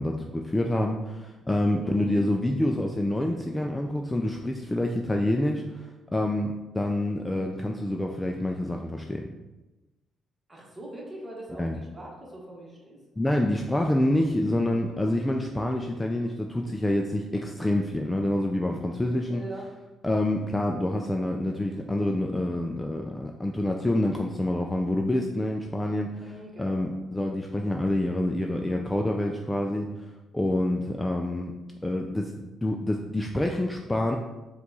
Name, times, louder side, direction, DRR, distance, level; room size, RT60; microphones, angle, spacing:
voice 1, 0.0-9.3 11.6-11.7 13.2-19.4 20.0-26.1 26.6-30.1 30.3-31.5 31.8-34.2, left 1 dB, 10° left, 2 dB, 0.3 m, -27 dB
voice 2, 1.8-2.1 10.5-13.0 19.3-19.7 26.1-26.8, right 1 dB, 20° right, -3 dB, 1.3 m, -41 dB
4.5 x 2.3 x 4.0 m, 1.1 s
cardioid pair, 90°, 0 cm